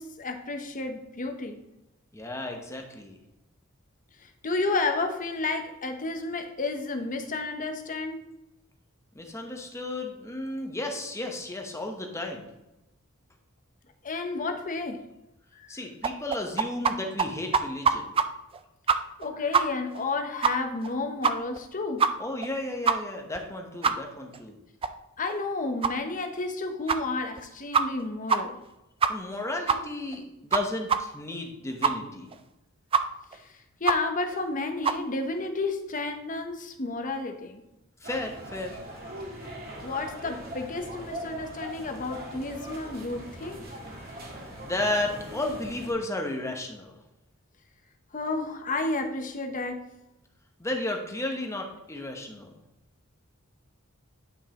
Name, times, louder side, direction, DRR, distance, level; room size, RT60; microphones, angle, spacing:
voice 1, 0.0-1.6 4.2-8.2 14.0-15.0 15.6-15.7 19.2-22.1 25.2-28.6 33.3-33.4 33.8-37.6 39.8-43.7 48.1-49.8, left 3 dB, 40° left, 5 dB, 0.9 m, -31 dB
voice 2, 2.1-3.2 9.1-12.5 15.7-18.1 22.2-24.6 29.1-32.3 38.0-38.8 44.6-47.0 50.6-52.5, left 2 dB, 15° left, 3 dB, 1.0 m, -33 dB
sound 1, 16.0-16.9 17.2-17.3 17.5-18.2 18.5-18.6 18.9-19.3 19.5-19.6 19.9-20.0 20.4-20.5 20.8-20.9 21.2-21.6 22.0-22.1 22.4-22.5 22.9-23.0 23.3-23.4 23.8-23.9 24.3-24.4 24.8-24.9 25.3-25.4 25.8-25.9 26.4-26.5 26.9-27.0 27.4-27.5 27.7-28.0 28.3-28.4 28.6-28.7 29.0-29.4 29.7-29.8 30.1-30.2 30.5-30.6 30.9-31.0 31.3-31.4 31.8-31.9 32.3-32.4 32.9-33.0 33.3-33.4 33.8-34.0 34.3-34.4 34.8-35.0, right 6 dB, 25° right, 0.3 m, -23 dB
sound 2, 38.0-45.9, right 1 dB, 45° right, 1.7 m, -41 dB
9.2 x 5.4 x 3.0 m, 0.93 s
head